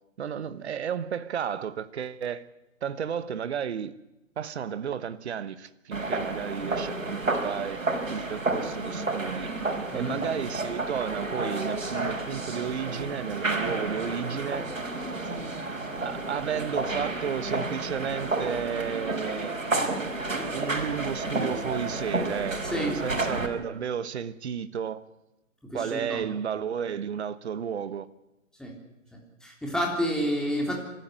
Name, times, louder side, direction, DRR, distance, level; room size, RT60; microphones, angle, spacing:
voice 1, 0.2-2.5 2.8-3.9 4.4-7.8 8.1-9.5 9.9-14.7 16.0-19.6 20.5-25.0 25.7-28.1, right 8 dB, 55° right, 1.2 m, -32 dB
sound 1, 5.9-23.5, right 2 dB, 80° right, 4.7 m, -31 dB
voice 2, 22.6-22.9 25.7-26.2 28.6-28.7 29.4-30.7, equal, ahead, 3.6 m, -29 dB
25.0 x 14.0 x 9.7 m
figure-of-eight pair, 130°, 39 cm